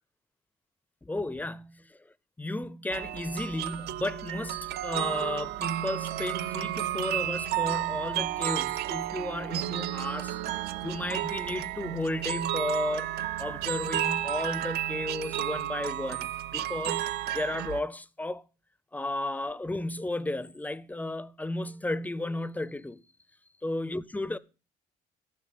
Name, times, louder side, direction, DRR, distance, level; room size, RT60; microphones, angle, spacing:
voice 1, 1.0-2.0 2.4-10.4 10.8-18.4 18.9-23.0 23.6-24.4, left 2 dB, 10° left, 0.4 m, -34 dB
sound 1, 2.9-17.8, right 13 dB, 70° right, 0.5 m, -32 dB
14.0 x 5.5 x 5.0 m
cardioid pair, 110°, 17 cm